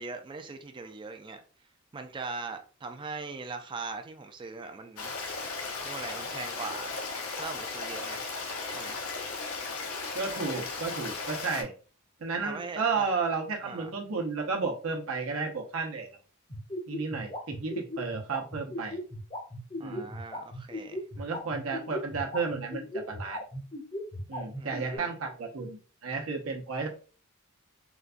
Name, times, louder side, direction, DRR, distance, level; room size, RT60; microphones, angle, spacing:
voice 1, 0.0-1.4 1.9-5.1 5.8-7.0 7.4-8.2 8.7-9.0 12.3-13.1 13.6-13.9 19.8-21.0 24.6-25.1, right 4 dB, 20° right, 0.3 m, -40 dB
Stream, 5.0-11.6, left 4 dB, 80° left, 0.7 m, -36 dB
voice 2, 10.1-11.7 12.2-16.1 16.9-19.0 19.8-20.1 21.2-23.4 24.3-26.9, right 4 dB, 70° right, 0.8 m, -32 dB
sound 1, 16.5-25.0, left 1 dB, 25° left, 0.6 m, -37 dB
3.9 x 2.2 x 2.4 m
head